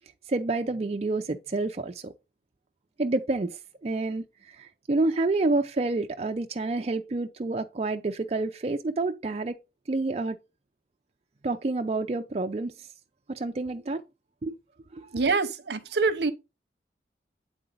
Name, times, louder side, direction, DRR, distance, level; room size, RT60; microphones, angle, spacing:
voice 1, 0.3-2.1 3.0-9.6 9.9-10.4 11.4-12.9 13.3-14.0 14.4-14.6 14.9-15.1, right 2 dB, 35° right, 0.4 m, -28 dB
voice 2, 15.1-16.3, right 4 dB, 70° right, 0.8 m, -25 dB
8.8 x 3.9 x 3.9 m
head